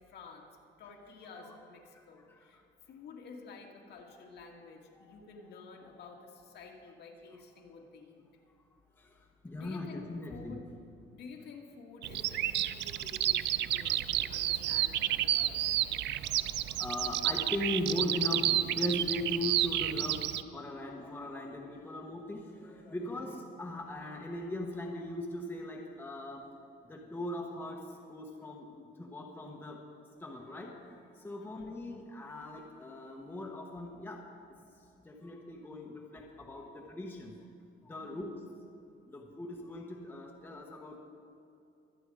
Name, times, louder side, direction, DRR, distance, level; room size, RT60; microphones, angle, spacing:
voice 1, 0.0-2.6 2.9-8.2 9.5-10.0 10.3-10.6 11.1-15.8 23.0-23.4 31.4-31.8 38.0-38.3 39.6-39.7, left 4 dB, 55° left, 0 dB, 2.1 m, -51 dB
voice 2, 1.9-2.6 4.9-5.0 9.0-10.6 13.7-14.0 16.1-26.4 26.8-29.8 30.2-34.2 34.8-37.4 37.8-38.3 39.1-41.0, left 1 dB, 10° left, -1 dB, 1.1 m, -39 dB
Bird vocalization bird call bird song, 12.0-20.4, right 12 dB, 60° right, 0.5 m, -31 dB
24.0 x 8.9 x 4.9 m, 2.6 s
cardioid pair, 165°, 21 cm